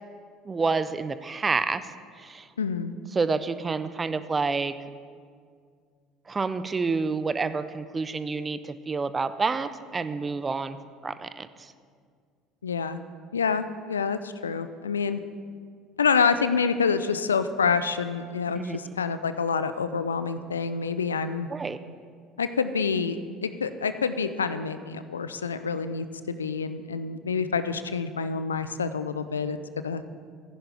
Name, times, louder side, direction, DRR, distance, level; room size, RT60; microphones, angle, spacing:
voice 1, 0.5-1.8 2.2-2.5 3.1-4.7 6.3-10.8 11.0-11.7 18.5-18.8 21.5-21.8, right 4 dB, 25° right, 13 dB, 0.5 m, -28 dB
voice 2, 2.6-2.9 12.6-13.0 13.3-15.2 16.0-21.5 22.4-29.6 29.8-30.0, left 5 dB, 80° left, 12 dB, 0.4 m, -27 dB
14.5 x 10.5 x 3.4 m, 2.1 s
figure-of-eight pair, 60°, 0 cm